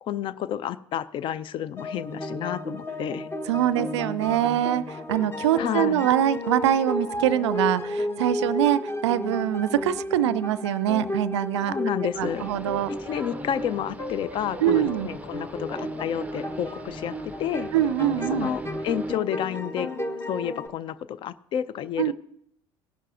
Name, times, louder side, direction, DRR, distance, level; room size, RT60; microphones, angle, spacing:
voice 1, 0.0-3.3 5.6-6.1 11.7-12.4 12.9-17.7 18.3-19.9 20.3-22.1, left 9 dB, 35° left, 18 dB, 0.4 m, -30 dB
sound 1, 1.8-20.7, left 1 dB, 15° left, 0.9 m, -33 dB
voice 2, 3.5-11.8 12.2-12.9 14.6-15.1 17.7-18.5 22.0-22.1, right 11 dB, 65° right, 17 dB, 0.4 m, -24 dB
sound 2, 12.1-19.1, right 2 dB, 10° right, 0.6 m, -42 dB
18.0 x 11.0 x 2.4 m, 0.73 s
figure-of-eight pair, 70°, 16 cm